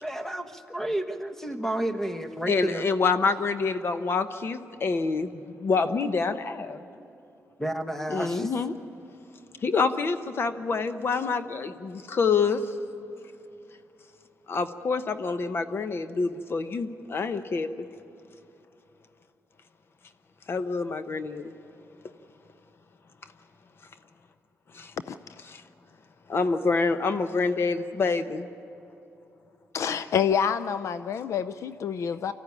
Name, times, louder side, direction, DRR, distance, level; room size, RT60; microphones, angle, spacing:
voice 1, 0.0-2.8 7.6-8.5, right 1 dB, 5° left, 7 dB, 1.3 m, -31 dB
voice 2, 2.5-5.3 5.6-6.8 8.1-8.7 9.6-12.6 14.5-17.7 20.5-21.5 24.7-24.9 25.5-25.6 26.3-28.5, left 4 dB, 45° left, 10 dB, 0.9 m, -27 dB
voice 3, 29.7-32.3, left 7 dB, 65° left, 12 dB, 0.5 m, -27 dB
25.0 x 14.5 x 9.8 m, 2.8 s
cardioid pair, 105°, 5 cm